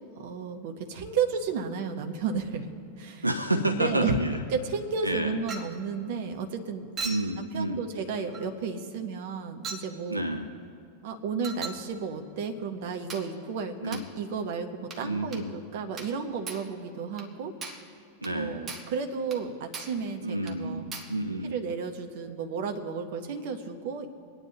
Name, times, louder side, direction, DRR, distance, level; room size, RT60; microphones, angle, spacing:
voice 1, 0.2-2.7 3.0-3.2 3.5-4.2 4.5-6.9 7.4-10.2 11.0-17.5 18.3-20.8 21.4-24.1, right 5 dB, 50° right, 5 dB, 1.1 m, -33 dB
voice 2, 3.2-4.4 5.0-5.3 7.0-7.8 10.1-10.4 13.8-14.0 15.0-15.5 18.2-18.6 20.2-21.6, right 1 dB, 85° right, 7 dB, 0.6 m, -29 dB
Chink clink, 5.5-5.8 7.0-7.3 8.3-8.5 9.6-9.9 11.4-11.9 13.1-13.3 13.9-14.1 14.9-15.1 15.3-15.5 16.0-16.2 16.5-16.7 17.2-17.3 17.6-17.9 18.2-18.4 18.7-19.0 19.3-19.4 19.7-20.0 20.5-20.6 20.9-21.2, right 4 dB, 25° right, 1.2 m, -39 dB
24.0 x 9.6 x 3.0 m, 2.6 s
figure-of-eight pair, 90°, 0 cm